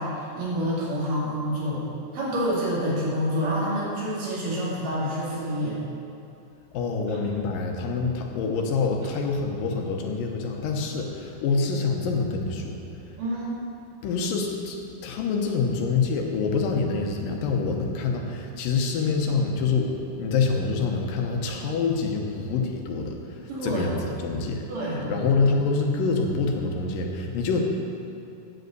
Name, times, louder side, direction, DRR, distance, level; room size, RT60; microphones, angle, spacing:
voice 1, 0.0-1.8 2.1-5.8 7.1-7.2 13.2-13.6 23.5-23.9 24.7-25.3, equal, 75° right, -7 dB, 4.1 m, -28 dB
voice 2, 6.7-12.8 14.0-14.8 15.0-23.2 23.6-23.9 24.2-27.6, left 4 dB, 90° left, 2 dB, 2.7 m, -26 dB
10.0 x 5.2 x 7.9 m, 2.7 s
omnidirectional pair, 3.9 m